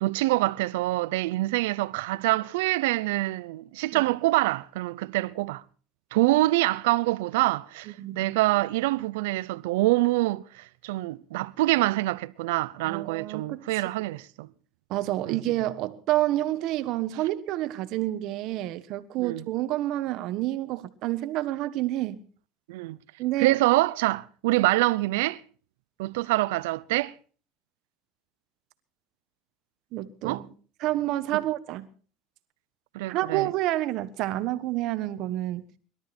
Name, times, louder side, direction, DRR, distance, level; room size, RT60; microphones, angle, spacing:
voice 1, 0.0-5.6 6.1-14.5 15.3-15.4 19.2-19.4 22.7-23.0 23.4-25.4 26.0-27.1 30.2-30.4 31.3-31.4 32.9-33.5, right 19 dB, 90° right, 0.6 m, -25 dB
voice 2, 7.9-8.3 12.8-13.6 14.9-22.2 23.2-23.6 29.9-30.4 30.8-31.9 33.1-35.6, right 15 dB, 60° right, 1.3 m, -29 dB
21.5 x 13.0 x 4.4 m
supercardioid pair, 120°, 0 cm